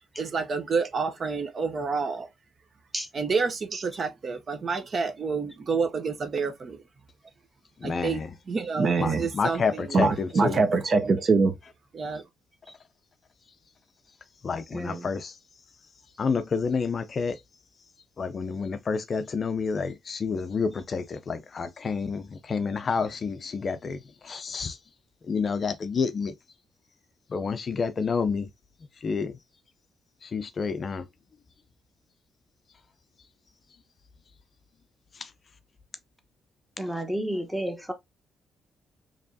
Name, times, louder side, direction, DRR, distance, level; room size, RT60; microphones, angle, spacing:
voice 1, 0.2-2.3 3.1-6.8 7.8-11.6 11.9-12.2, right 4 dB, 40° right, 0.7 m, -26 dB
voice 2, 7.8-8.3 9.0-10.6 14.4-15.3 16.2-17.4 18.2-24.8 25.3-26.3 27.3-28.5 29.0-29.3 30.2-31.0 35.2-35.3, left 5 dB, 40° left, 0.5 m, -29 dB
voice 3, 14.7-15.1 36.8-37.9, right 1 dB, ahead, 0.9 m, -31 dB
4.6 x 3.0 x 2.6 m
cardioid pair, 115°, 0 cm